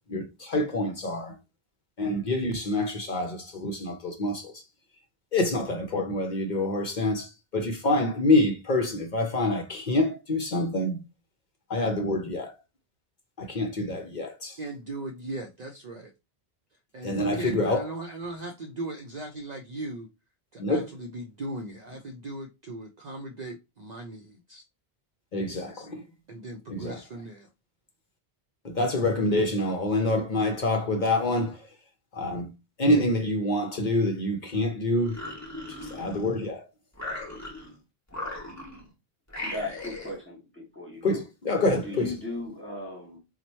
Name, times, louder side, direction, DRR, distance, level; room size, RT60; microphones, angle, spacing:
voice 1, 0.1-1.4 2.0-4.6 5.3-11.0 11.7-12.6 13.4-14.6 17.0-17.9 20.6-20.9 25.3-26.0 26.7-27.0 28.6-31.6 32.1-32.3 32.8-35.2 35.9-36.6 41.0-42.1, left 2 dB, 55° left, 0.7 m, -26 dB
voice 2, 14.6-16.1 16.9-20.1 20.5-24.6 25.7-25.9 26.3-27.5, right 2 dB, 55° right, 0.5 m, -38 dB
sound 1, 34.9-36.5 36.9-37.8 38.1-38.9 39.3-40.2, left 1 dB, 15° left, 1.1 m, -38 dB
voice 3, 39.4-41.2 41.8-43.2, left 2 dB, 10° right, 1.2 m, -37 dB
2.9 x 2.1 x 4.1 m
omnidirectional pair, 1.0 m